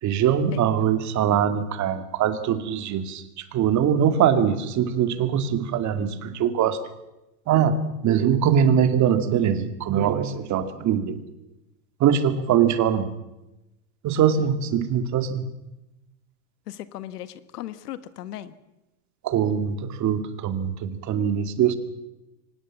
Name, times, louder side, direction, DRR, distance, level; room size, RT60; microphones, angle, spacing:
voice 1, 0.0-6.8 7.5-11.2 12.0-13.1 14.0-15.5 19.2-21.8, right 8 dB, 40° right, 9 dB, 2.3 m, -22 dB
voice 2, 0.5-0.9 16.7-18.5, left 12 dB, 80° left, 13 dB, 1.7 m, -37 dB
24.0 x 20.0 x 7.4 m, 0.95 s
supercardioid pair, 125°, 46 cm